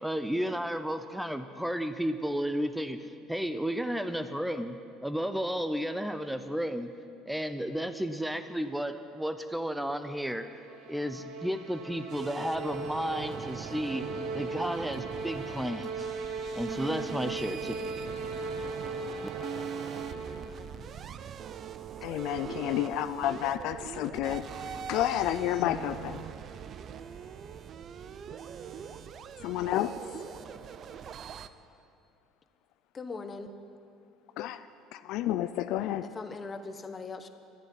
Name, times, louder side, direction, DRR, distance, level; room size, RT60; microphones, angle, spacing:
voice 1, 0.0-6.9 7.3-10.5 10.9-14.0 14.3-16.1 16.6-17.7, equal, 5° right, 10 dB, 0.6 m, -33 dB
sound 1, 10.2-20.8, right 3 dB, 65° right, 1.8 m, -38 dB
sound 2, 12.1-31.5, right 8 dB, 45° right, 0.6 m, -42 dB
voice 2, 22.0-24.4 24.9-26.2 29.4-29.9 34.4-34.6 34.9-36.1, left 13 dB, 70° left, 12 dB, 0.4 m, -30 dB
voice 3, 32.9-33.5 36.0-37.3, left 4 dB, 25° left, 9 dB, 1.0 m, -40 dB
11.5 x 10.5 x 9.3 m, 2.5 s
cardioid pair, 115°, 0 cm